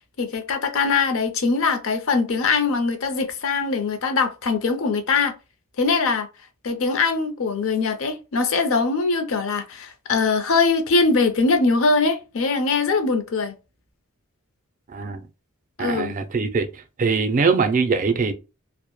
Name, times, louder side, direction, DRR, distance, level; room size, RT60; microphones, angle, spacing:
voice 1, 0.2-5.3 5.8-6.3 6.6-13.5 15.8-16.1, left 4 dB, 65° left, 0.5 m, -22 dB
voice 2, 14.9-15.2 15.8-16.7 17.0-18.3, right 4 dB, 35° right, 0.4 m, -22 dB
2.1 x 2.0 x 2.9 m
head